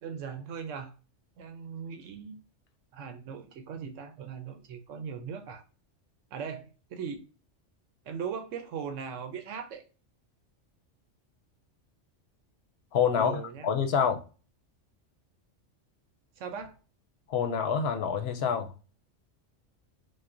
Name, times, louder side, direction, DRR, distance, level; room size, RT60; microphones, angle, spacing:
voice 1, 0.0-0.9 1.4-2.4 2.9-5.6 6.3-7.2 8.0-9.8 13.1-13.7 16.4-16.8, right 6 dB, 85° right, 1.0 m, -39 dB
voice 2, 12.9-13.3 13.6-14.2 17.3-18.7, left 7 dB, 65° left, 0.8 m, -26 dB
6.3 x 2.1 x 2.5 m
omnidirectional pair, 1.3 m